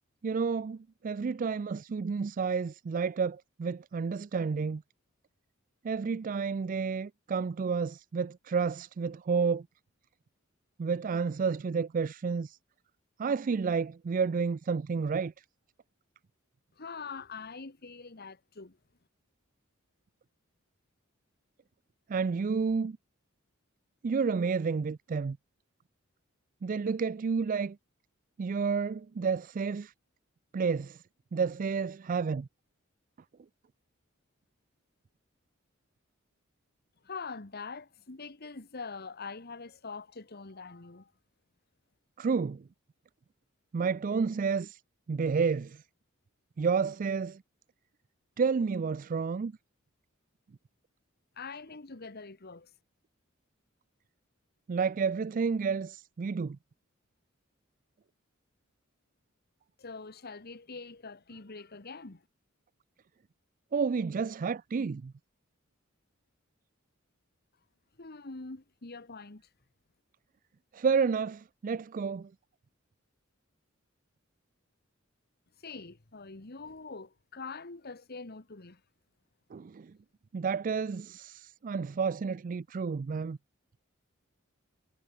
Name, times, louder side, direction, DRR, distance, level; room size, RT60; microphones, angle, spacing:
voice 1, 0.2-4.8 5.8-9.7 10.8-12.6 13.2-15.3 22.1-23.0 24.0-25.4 26.6-27.8 28.4-29.9 30.5-31.0 31.3-32.5 42.2-42.6 43.7-44.8 45.1-45.8 46.6-47.4 48.4-49.5 54.7-56.6 63.7-65.1 70.7-72.3 79.5-79.9 80.3-83.4, right 5 dB, 40° right, 0.4 m, -30 dB
voice 2, 16.8-18.8 37.0-41.1 51.4-52.7 59.8-62.2 68.0-69.5 75.6-78.8, left 4 dB, 50° left, 1.5 m, -44 dB
head